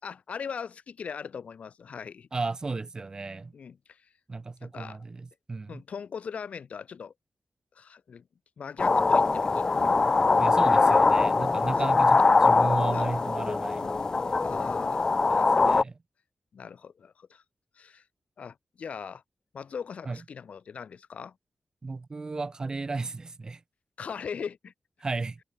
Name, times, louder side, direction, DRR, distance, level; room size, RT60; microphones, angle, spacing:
voice 1, 0.0-2.3 3.5-4.1 4.6-5.0 5.7-7.1 7.7-8.3 8.6-10.0 11.6-11.9 12.2-12.6 12.9-13.1 14.3-15.0 15.3-15.6 16.5-17.4 17.7-18.0 18.4-19.2 19.5-21.4 24.0-24.7, left 6 dB, 70° left, 7.0 m, -40 dB
voice 2, 2.3-3.5 4.3-5.8 10.4-13.9 15.3-16.0 20.0-20.2 21.8-23.6 25.0-25.4, right 3 dB, 30° right, 3.2 m, -34 dB
sound 1, 8.8-15.8, left 3 dB, 30° left, 0.9 m, -22 dB
wide cardioid pair, 155°, 2 cm